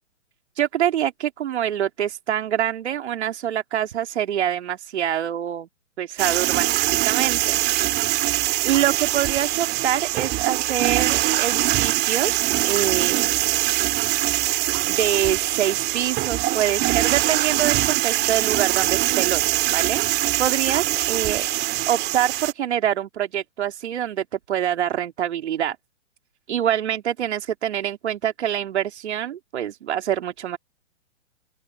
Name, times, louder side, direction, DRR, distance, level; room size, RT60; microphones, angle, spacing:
voice 1, 0.6-5.7 6.0-7.6 8.6-13.3 14.9-21.5 21.9-25.8 26.5-30.6, right 10 dB, 60° right, 2.9 m, -25 dB
sound 1, 6.2-22.5, right 18 dB, 25° right, 2.8 m, -23 dB
open air
figure-of-eight pair, 125°, 38 cm